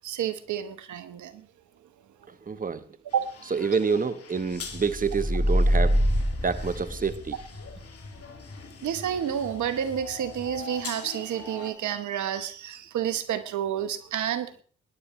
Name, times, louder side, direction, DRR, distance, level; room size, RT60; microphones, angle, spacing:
voice 1, 0.0-1.5 3.1-3.3 8.8-14.5, right 9 dB, 70° right, 1.0 m, -30 dB
voice 2, 2.5-2.8 3.5-6.0 6.4-7.3, right 5 dB, 25° right, 1.1 m, -27 dB
sound 1, 3.1-11.7, left 4 dB, 50° left, 2.3 m, -43 dB
sound 2, 4.8-7.5, equal, 5° right, 4.7 m, -24 dB
22.0 x 10.5 x 3.1 m
supercardioid pair, 50°, 30 cm